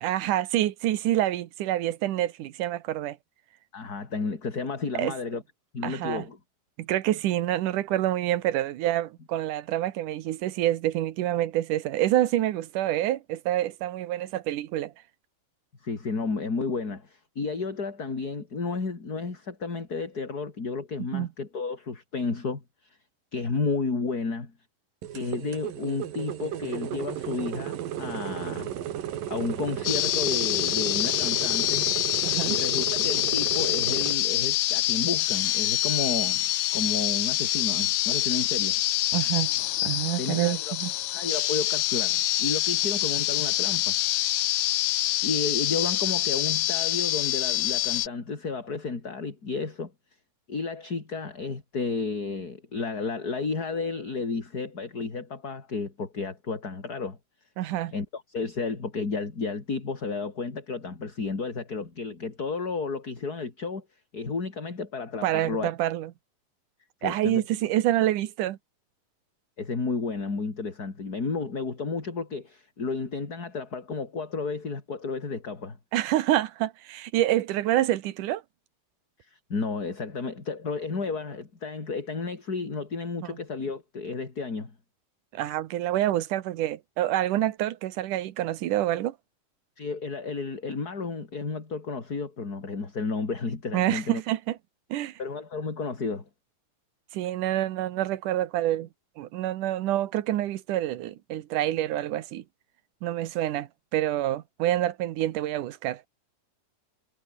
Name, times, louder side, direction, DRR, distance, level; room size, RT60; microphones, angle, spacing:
voice 1, 0.0-3.2 4.9-5.1 5.8-6.2 6.8-14.9 21.1-21.3 32.2-32.6 39.1-39.5 39.8-40.9 57.6-57.9 65.2-66.1 67.0-68.6 75.9-78.4 83.2-83.4 85.3-89.2 93.7-94.6 94.9-95.2 97.1-98.9 99.2-102.4 103.0-106.0, right 13 dB, 70° right, 2.6 m, -27 dB
voice 2, 3.7-5.4 5.7-6.4 15.8-22.6 23.3-24.5 25.1-28.7 29.3-31.9 32.5-36.4 36.7-38.8 40.2-40.7 41.1-44.4 45.2-49.9 50.5-57.2 57.9-63.8 64.1-65.7 67.0-67.4 69.6-75.8 79.2-84.7 89.8-94.2 95.2-96.3, left 4 dB, 30° left, 3.5 m, -32 dB
sound 1, 25.0-34.1, right 11 dB, 85° right, 3.5 m, -34 dB
sound 2, 29.8-48.1, left 17 dB, 75° left, 1.6 m, -26 dB
omnidirectional pair, 3.9 m